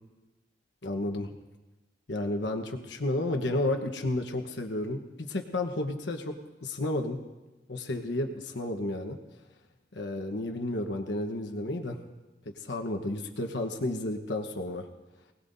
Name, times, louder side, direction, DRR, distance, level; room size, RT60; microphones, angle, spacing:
voice 1, 0.8-1.3 2.1-6.3 6.6-7.2 7.7-9.2 9.9-12.0 12.5-14.9, left 1 dB, 75° left, 5 dB, 1.2 m, -32 dB
24.0 x 18.5 x 2.7 m, 1.1 s
head